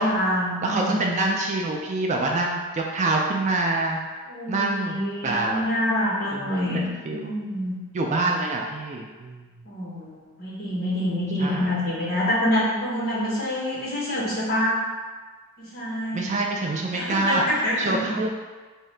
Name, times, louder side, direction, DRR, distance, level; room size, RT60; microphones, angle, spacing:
voice 1, 0.0-1.0 4.3-6.9 7.1-7.8 9.6-14.8 15.6-16.4 16.9-18.2, equal, 45° left, -7 dB, 1.2 m, -26 dB
voice 2, 0.6-4.0 4.5-5.0 5.2-5.7 6.3-7.3 7.9-9.5 11.4-11.7 16.1-18.3, right 2 dB, 35° right, 0 dB, 0.3 m, -26 dB
3.7 x 2.7 x 3.2 m, 1.4 s
head